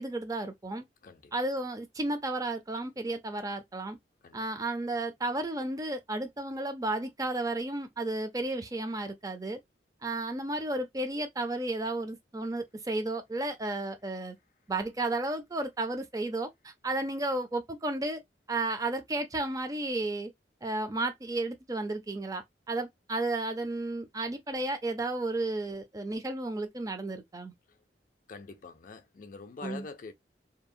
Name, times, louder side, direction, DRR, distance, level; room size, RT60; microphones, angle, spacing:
voice 1, 0.0-0.8 1.3-4.0 4.3-9.6 10.0-14.3 14.7-18.2 18.5-20.3 20.6-27.5 29.6-29.9, right 2 dB, 20° right, 0.5 m, -33 dB
voice 2, 28.3-30.1, left 4 dB, 45° left, 0.4 m, -45 dB
2.7 x 2.0 x 2.5 m
head